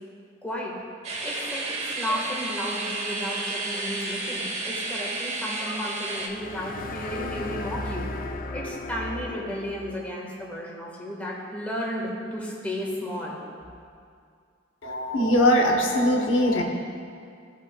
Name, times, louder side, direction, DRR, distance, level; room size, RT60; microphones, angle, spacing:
voice 1, 0.4-0.7 1.2-8.1 8.5-13.4, equal, 10° left, -4 dB, 1.3 m, -33 dB
sound 1, 1.0-6.3, right 2 dB, 35° right, 1.0 m, -31 dB
sound 2, 6.3-10.0, left 2 dB, 50° left, 0.5 m, -35 dB
voice 2, 14.8-16.6, left 1 dB, 80° left, 1 dB, 0.9 m, -21 dB
16.5 x 5.6 x 2.2 m, 2.3 s
head